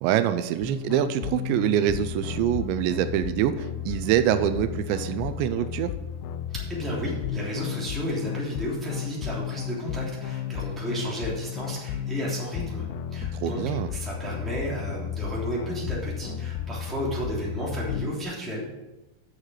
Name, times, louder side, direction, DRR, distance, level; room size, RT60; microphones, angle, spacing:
voice 1, 0.0-5.9 13.3-13.9, right 11 dB, 85° right, 10 dB, 2.8 m, -25 dB
sound 1, 0.6-18.2, left 9 dB, 90° left, 2.9 m, -33 dB
voice 2, 6.5-12.8 13.1-13.6 13.9-18.7, right 1 dB, ahead, -6 dB, 2.2 m, -33 dB
8.9 x 6.5 x 6.3 m, 1.0 s
omnidirectional pair, 5.1 m